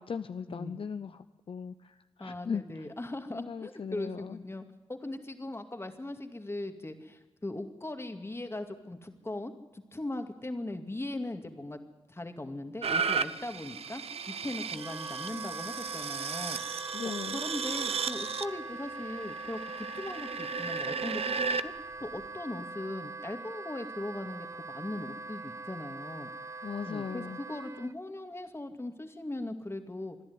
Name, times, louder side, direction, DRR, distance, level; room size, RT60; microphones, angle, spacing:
voice 1, 0.0-2.9 3.3-4.4 16.9-17.4 26.6-27.4, left 6 dB, 65° left, 11 dB, 0.7 m, -38 dB
voice 2, 2.2-4.6 4.9-11.8 12.1-14.0 14.3-16.6 17.3-21.2 21.6-21.7 22.0-26.3 26.9-30.2, left 2 dB, 25° left, 7 dB, 2.3 m, -39 dB
sound 1, 12.8-21.6 22.2-22.3, right 5 dB, 80° right, 0.8 m, -35 dB
Wind instrument woodwind instrument, 14.7-27.9, right 3 dB, 30° right, 0.6 m, -42 dB
26.0 x 11.0 x 9.6 m, 1.1 s
cardioid pair, 65°, 10 cm